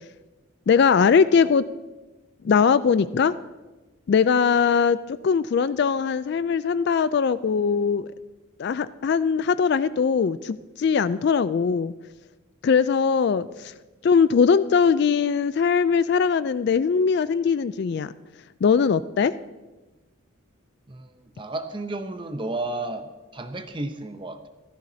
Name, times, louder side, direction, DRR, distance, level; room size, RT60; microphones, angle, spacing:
voice 1, 0.7-1.6 2.4-3.3 4.1-5.0 5.2-8.1 8.6-11.9 12.6-13.5 14.0-18.1 18.6-19.3, left 6 dB, 50° left, 15 dB, 0.3 m, -20 dB
voice 2, 20.9-24.5, right 2 dB, 25° right, 8 dB, 0.7 m, -33 dB
15.5 x 13.5 x 2.8 m, 1.1 s
head